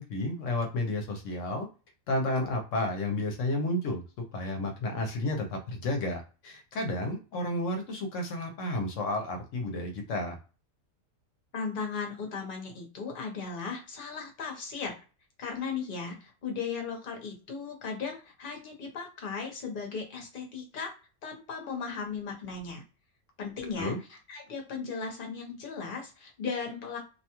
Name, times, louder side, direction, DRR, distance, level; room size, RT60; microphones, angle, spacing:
voice 1, 0.0-1.7 2.1-4.0 4.3-10.4 23.8-24.0, left 1 dB, 75° left, 4 dB, 1.0 m, -31 dB
voice 2, 11.5-15.0 15.4-20.9 21.2-22.8 23.4-27.0, left 5 dB, 45° left, 2 dB, 0.9 m, -37 dB
2.7 x 2.2 x 2.9 m, 0.33 s
omnidirectional pair, 1.4 m